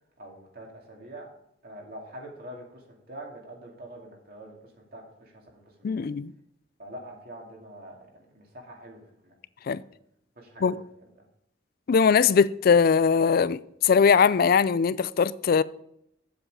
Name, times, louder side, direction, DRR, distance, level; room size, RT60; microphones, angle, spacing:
voice 1, 0.2-1.3 1.6-6.1 6.8-9.3 9.7-9.9 10.4-10.7 11.2-11.3, right 1 dB, 50° right, 2.4 m, -45 dB
voice 2, 5.8-6.3 9.7-9.8 10.6-10.8 11.9-15.6, left 6 dB, 50° left, 0.3 m, -21 dB
8.8 x 7.7 x 4.8 m
head